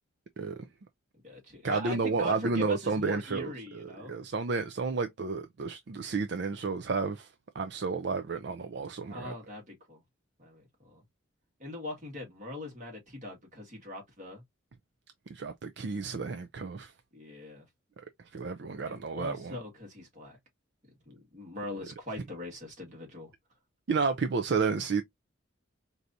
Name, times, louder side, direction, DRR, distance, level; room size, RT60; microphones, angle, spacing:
voice 1, 0.4-0.7 1.6-9.3 15.3-16.9 18.3-19.6 23.9-25.0, right 4 dB, 55° right, 0.4 m, -31 dB
voice 2, 1.2-4.2 9.1-10.0 10.4-11.0 11.6-14.4 17.1-17.6 18.9-20.4 21.1-23.3, left 1 dB, 35° right, 1.8 m, -41 dB
4.6 x 2.7 x 2.6 m
head